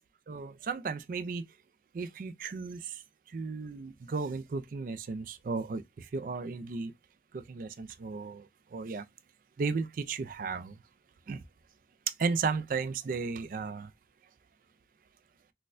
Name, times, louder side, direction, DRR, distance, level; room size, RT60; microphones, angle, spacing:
voice 1, 0.3-1.4 1.9-3.0 3.3-6.9 7.3-9.0 9.6-10.8 11.3-11.4 12.2-13.9, right 4 dB, 50° right, 0.3 m, -35 dB
4.1 x 2.2 x 2.5 m
head